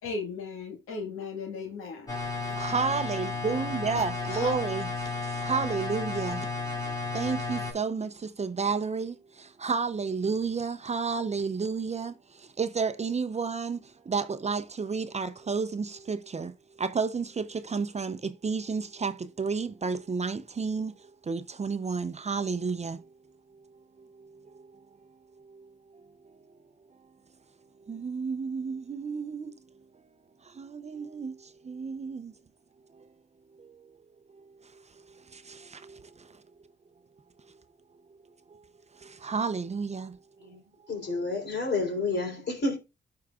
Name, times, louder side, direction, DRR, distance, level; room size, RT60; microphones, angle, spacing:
voice 1, 0.0-2.2 2.4-2.5 4.3-4.6, left 4 dB, 90° left, 1.7 m, -36 dB
sound 1, 2.1-7.7, left 3 dB, 20° left, 4.1 m, -33 dB
voice 2, 2.1-6.5 7.1-23.1 24.0-24.7 25.4-26.4 27.9-29.5 30.0-30.1 30.4-32.3 32.9-33.1 33.6-34.0 34.6-34.8 35.1-36.4 38.5-38.7 38.9-40.2, right 5 dB, 30° right, 0.6 m, -32 dB
voice 3, 40.9-42.8, left 3 dB, 55° left, 3.7 m, -30 dB
12.5 x 4.7 x 2.4 m
cardioid pair, 75°, 21 cm